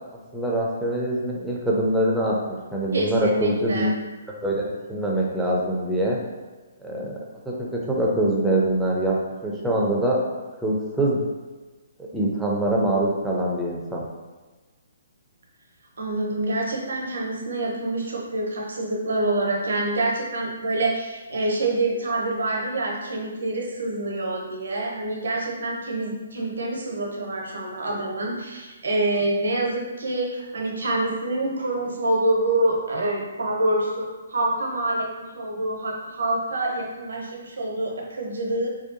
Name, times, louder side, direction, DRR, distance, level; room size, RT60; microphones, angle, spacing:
voice 1, 0.3-3.9 4.4-4.6 4.9-6.2 6.8-7.2 7.5-9.2 9.4-10.2 10.6-11.2 12.1-14.0, right 1 dB, ahead, -5 dB, 0.5 m, -24 dB
voice 2, 2.9-3.9 16.0-38.7, right 2 dB, 70° right, -1 dB, 0.6 m, -26 dB
2.7 x 2.3 x 2.5 m, 1.2 s
figure-of-eight pair, 130°, 0 cm